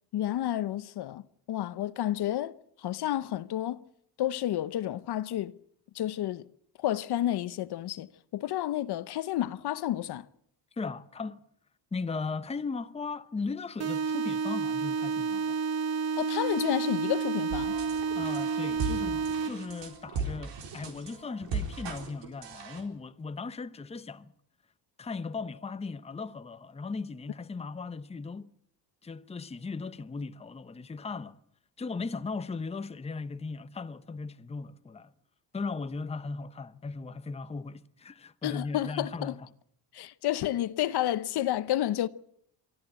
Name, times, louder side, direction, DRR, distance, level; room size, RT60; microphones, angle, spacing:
voice 1, 0.1-1.2 1.5-3.8 4.2-5.5 5.9-6.5 6.8-10.3 16.2-17.8 38.4-39.4 39.9-42.1, left 13 dB, 65° left, 0.8 m, -30 dB
voice 2, 10.8-11.4 11.9-15.6 18.1-24.3 25.0-28.5 29.0-31.4 31.8-35.1 35.5-39.4, left 4 dB, 15° left, 0.7 m, -37 dB
sound 1, 13.8-19.8, right 5 dB, 35° right, 1.1 m, -30 dB
sound 2, 17.5-22.8, right 4 dB, 90° right, 4.1 m, -37 dB
24.0 x 13.5 x 8.8 m
cardioid pair, 115°, 43 cm